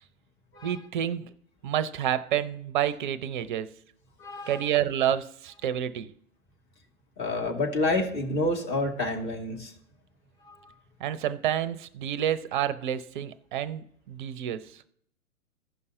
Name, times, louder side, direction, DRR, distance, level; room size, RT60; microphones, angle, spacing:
voice 1, 0.6-1.3 1.6-3.7 4.5-6.1 11.0-14.8, right 10 dB, 35° right, 0.7 m, -29 dB
voice 2, 4.2-4.6 7.2-9.7 10.4-10.7, left 2 dB, 25° left, 2.1 m, -29 dB
16.0 x 5.5 x 2.6 m
figure-of-eight pair, 120°, 43 cm